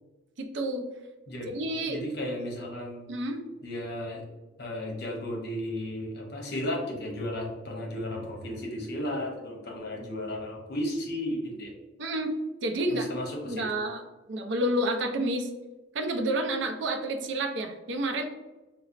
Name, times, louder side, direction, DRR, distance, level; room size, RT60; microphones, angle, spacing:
voice 1, 0.4-0.9 1.5-2.0 3.1-3.4 12.0-12.3 12.6-13.1 13.4-14.0 14.3-15.5 15.9-18.3, right 1 dB, 70° right, 5 dB, 0.4 m, -29 dB
voice 2, 1.3-3.1 3.6-4.2 4.6-11.7 12.9-13.6, left 1 dB, 55° left, 0 dB, 0.7 m, -34 dB
4.1 x 2.0 x 2.5 m, 1.1 s
head